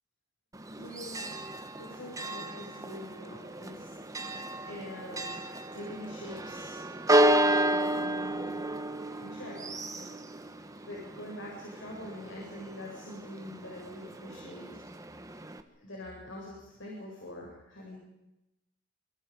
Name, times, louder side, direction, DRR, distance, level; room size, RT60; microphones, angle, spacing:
Church bell, 0.5-15.6, right 1 dB, 20° right, 1.6 m, -32 dB
voice 1, 0.8-1.3 1.7-4.0 4.7-5.3 5.7-6.8 7.4-8.6 9.2-10.2 10.9-14.7 15.8-18.0, left 1 dB, 75° left, -3 dB, 7.9 m, -44 dB
28.0 x 27.0 x 5.5 m, 0.94 s
head